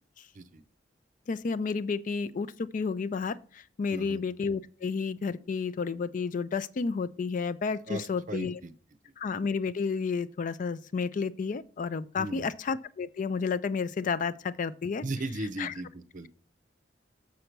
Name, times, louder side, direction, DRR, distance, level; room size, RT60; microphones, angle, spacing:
voice 1, 1.3-8.6 9.2-15.0 15.6-15.7, left 5 dB, 45° left, 0.4 m, -31 dB
voice 2, 3.9-4.2 7.9-8.7 12.2-12.5 15.0-16.3, right 2 dB, 45° right, 0.7 m, -37 dB
6.8 x 6.6 x 4.5 m
head